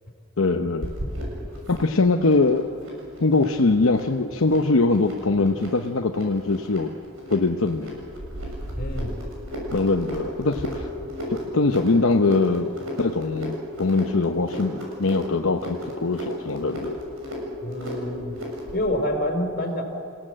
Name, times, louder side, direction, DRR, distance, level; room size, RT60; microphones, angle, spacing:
voice 1, 0.4-0.9 1.7-2.7 3.2-6.9 7.3-8.0 9.7-10.9 11.3-12.7 13.0-17.0, left 3 dB, 80° left, 4 dB, 0.8 m, -22 dB
sound 1, 0.8-18.8, equal, 90° right, 6.8 m, -35 dB
voice 2, 8.8-9.1 17.6-18.4 18.7-19.8, left 1 dB, 45° left, 3 dB, 4.0 m, -27 dB
28.5 x 16.5 x 7.6 m, 2.5 s
head